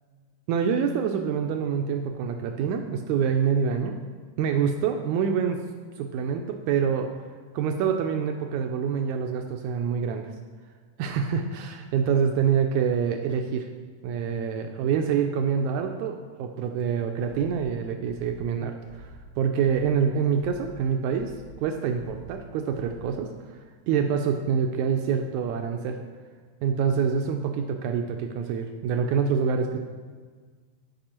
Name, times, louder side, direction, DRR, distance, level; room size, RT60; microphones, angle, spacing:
voice 1, 0.5-4.0 4.4-5.6 6.0-7.1 7.5-10.3 11.0-13.7 14.0-21.3 21.6-23.3 23.9-26.0 26.6-29.8, right 7 dB, 85° right, 4 dB, 1.6 m, -26 dB
sound 1, 17.3-23.3, equal, 60° left, 1.3 m, -48 dB
13.5 x 5.4 x 4.4 m, 1.5 s
omnidirectional pair, 3.9 m